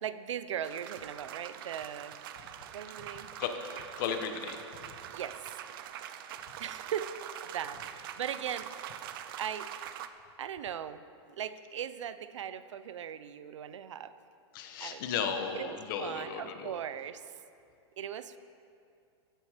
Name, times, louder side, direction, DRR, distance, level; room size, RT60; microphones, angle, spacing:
voice 1, 0.0-2.2 2.7-3.3 5.1-5.6 6.6-7.2 7.4-8.8 9.4-9.7 10.4-14.1 14.8-15.0 15.5-17.3 18.0-18.4, right 9 dB, 85° right, 13 dB, 0.7 m, -39 dB
sound 1, 0.6-10.1, right 10 dB, 50° right, 0.7 m, -44 dB
voice 2, 3.4-4.9 14.5-16.8, left 7 dB, 45° left, 6 dB, 1.3 m, -35 dB
15.0 x 9.4 x 5.1 m, 2.5 s
hypercardioid pair, 155°, 15 cm